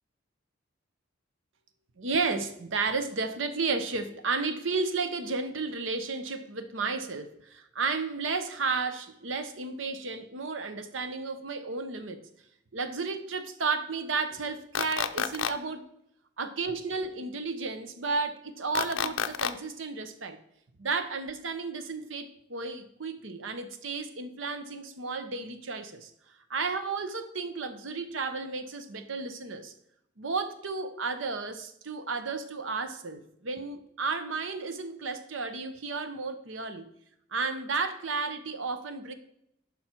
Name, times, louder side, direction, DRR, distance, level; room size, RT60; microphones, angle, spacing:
voice 1, 2.0-12.2 12.7-15.8 16.4-20.4 20.8-26.1 26.5-29.7 30.2-36.9 37.3-39.1, right 4 dB, 80° right, 9 dB, 0.9 m, -33 dB
sound 1, 14.7-15.5 18.7-19.5, left 8 dB, 75° left, 0.5 m, -29 dB
10.0 x 5.5 x 4.5 m, 0.76 s
head